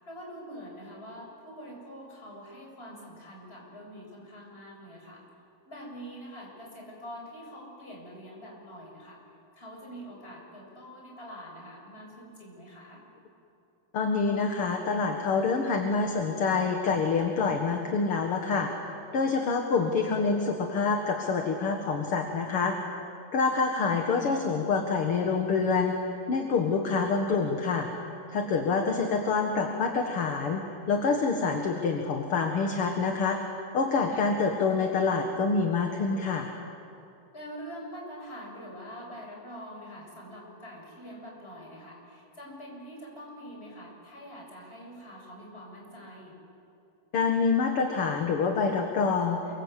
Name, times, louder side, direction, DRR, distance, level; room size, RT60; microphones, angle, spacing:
voice 1, 0.0-5.2 5.6-9.2 9.5-13.0 34.1-34.3 37.3-46.4, equal, 15° left, -2 dB, 7.5 m, -45 dB
voice 2, 13.9-18.7 19.1-22.8 23.3-27.9 28.3-33.4 33.7-36.5 47.1-49.4, left 4 dB, 50° left, 3 dB, 2.3 m, -26 dB
28.5 x 24.5 x 8.3 m, 2.6 s
omnidirectional pair, 3.7 m